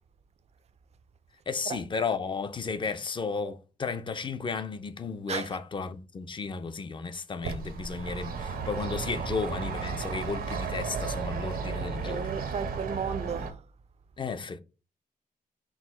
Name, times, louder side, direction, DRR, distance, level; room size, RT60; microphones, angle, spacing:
voice 1, 1.5-12.3 14.2-14.6, left 4 dB, 35° left, 0.5 m, -33 dB
sound 1, 7.4-13.5, right 5 dB, 85° right, 0.7 m, -34 dB
voice 2, 12.0-13.6, right 7 dB, 45° right, 0.4 m, -34 dB
4.6 x 2.1 x 4.1 m
wide cardioid pair, 120°, 15 cm